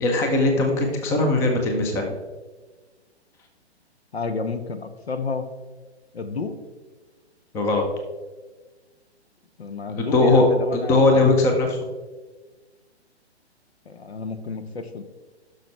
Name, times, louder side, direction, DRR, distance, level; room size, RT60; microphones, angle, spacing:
voice 1, 0.0-2.1 7.5-7.9 10.0-10.4 10.7-11.8, left 2 dB, 10° left, 3 dB, 0.6 m, -19 dB
voice 2, 4.1-5.5 6.1-6.6 9.6-11.3 13.9-15.0, left 4 dB, 65° left, 10 dB, 1.0 m, -31 dB
11.5 x 6.4 x 3.2 m, 1.3 s
figure-of-eight pair, 125°, 33 cm